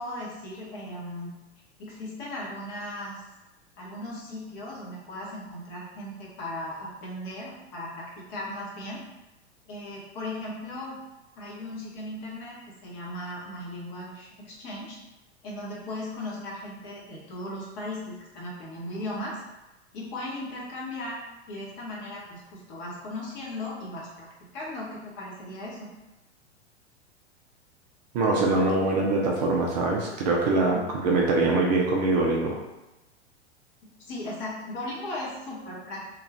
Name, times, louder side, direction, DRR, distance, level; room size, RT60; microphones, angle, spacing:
voice 1, 0.0-1.3 1.8-3.2 3.8-9.0 9.7-11.0 11.4-15.0 15.4-19.4 19.9-21.2 21.5-24.3 24.5-25.9 30.7-30.8 34.0-36.0, left 1 dB, 35° left, -5 dB, 1.0 m, -37 dB
voice 2, 28.1-32.6, right 3 dB, 40° right, -1 dB, 0.5 m, -23 dB
2.5 x 2.4 x 3.2 m, 1.0 s
figure-of-eight pair, 95°, 34 cm